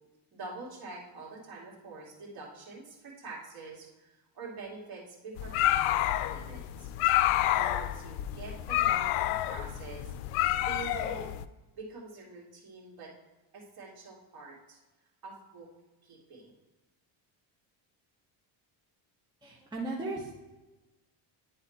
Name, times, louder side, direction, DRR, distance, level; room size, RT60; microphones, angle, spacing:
voice 1, 0.3-6.9 7.5-10.4 10.7-11.3 11.7-13.1 13.5-14.8 15.2-15.7 16.0-16.5, right 3 dB, 45° right, -4 dB, 2.6 m, -45 dB
sound 1, 5.4-11.4, left 14 dB, 85° left, 0.5 m, -29 dB
voice 2, 19.4-20.3, right 2 dB, 10° right, -4 dB, 1.0 m, -36 dB
10.5 x 4.0 x 4.2 m, 1.1 s
cardioid pair, 145°, 50 cm